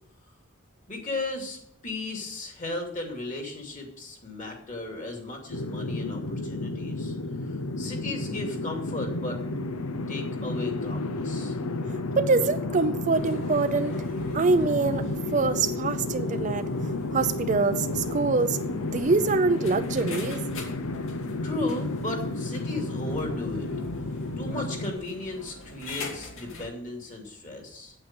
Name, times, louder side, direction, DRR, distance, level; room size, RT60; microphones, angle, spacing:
voice 1, 0.9-7.1 7.4-9.4 10.1-11.6 21.4-23.7 24.4-27.9, left 2 dB, 35° left, 2 dB, 2.6 m, -35 dB
sound 1, 5.5-24.9, left 2 dB, 90° left, 0.8 m, -31 dB
voice 2, 12.2-13.9 14.3-16.7 17.1-18.6 18.9-20.4, right 3 dB, 35° right, 11 dB, 0.4 m, -24 dB
sound 2, 13.1-26.7, left 2 dB, 70° left, 2.4 m, -43 dB
8.7 x 8.6 x 7.6 m, 0.71 s
head